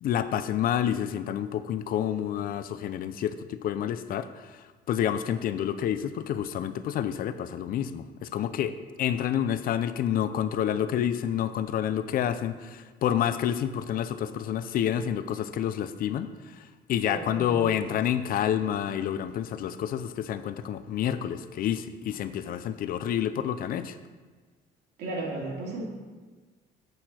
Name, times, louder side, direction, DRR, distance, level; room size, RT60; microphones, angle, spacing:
voice 1, 0.0-8.7 9.0-16.3 16.6-16.7 16.9-24.0, left 10 dB, 60° left, 12 dB, 0.5 m, -29 dB
voice 2, 17.0-17.6 25.0-25.8, right 2 dB, 75° right, -3 dB, 2.5 m, -34 dB
8.0 x 6.4 x 4.3 m, 1.4 s
cardioid pair, 110°, 17 cm